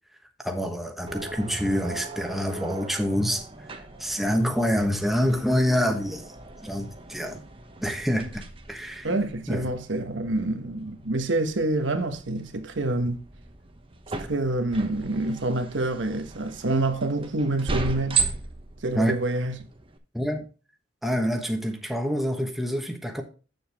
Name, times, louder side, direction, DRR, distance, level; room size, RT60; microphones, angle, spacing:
voice 1, 0.4-3.7 4.0-6.3 6.6-7.4 7.8-9.1 9.5-9.7 18.9-19.2 20.1-20.4 21.0-23.2, equal, ahead, 1.1 m, -26 dB
sound 1, 1.1-20.0, right 4 dB, 30° right, 0.9 m, -37 dB
voice 2, 9.0-13.2 14.2-18.3 18.8-19.6, right 2 dB, 75° right, 1.1 m, -27 dB
7.8 x 7.1 x 3.5 m
head